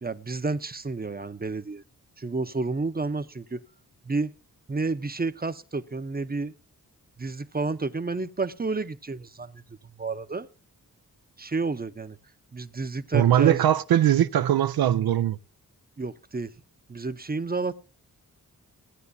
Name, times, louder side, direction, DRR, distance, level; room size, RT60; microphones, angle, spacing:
voice 1, 0.0-1.8 2.2-3.6 4.0-4.3 4.7-6.5 7.2-10.5 11.4-12.2 12.5-13.6 16.0-16.5 16.9-17.7, right 3 dB, 25° right, 0.8 m, -30 dB
voice 2, 13.1-15.4, right 11 dB, 75° right, 0.5 m, -21 dB
16.5 x 9.3 x 2.7 m
cardioid pair, 45°, 36 cm